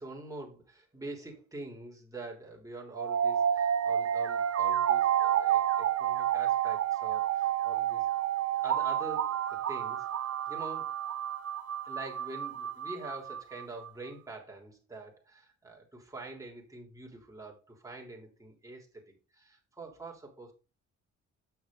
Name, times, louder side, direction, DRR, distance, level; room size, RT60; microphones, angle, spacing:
voice 1, 0.0-8.1 8.6-10.1 10.5-10.9 11.8-20.5, right 2 dB, 10° right, -1 dB, 3.2 m, -45 dB
sound 1, 2.9-13.9, right 10 dB, 55° right, 0.8 m, -30 dB
8.1 x 6.0 x 3.8 m, 0.32 s
cardioid pair, 90°, 30 cm